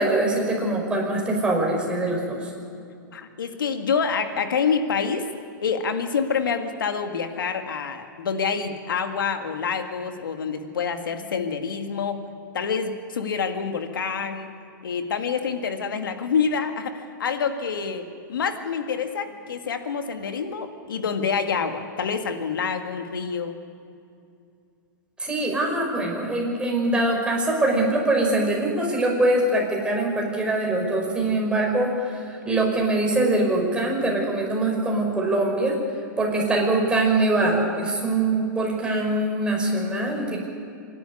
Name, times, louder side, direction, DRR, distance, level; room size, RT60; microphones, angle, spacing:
voice 1, 0.0-2.5 25.2-35.8 36.2-40.4, right 2 dB, 10° right, -1 dB, 5.5 m, -23 dB
voice 2, 3.1-5.3 5.6-12.2 12.5-14.5 14.8-23.6, left 6 dB, 85° left, 6 dB, 1.9 m, -27 dB
26.0 x 12.0 x 9.8 m, 2.5 s
hypercardioid pair, 130°, 11 cm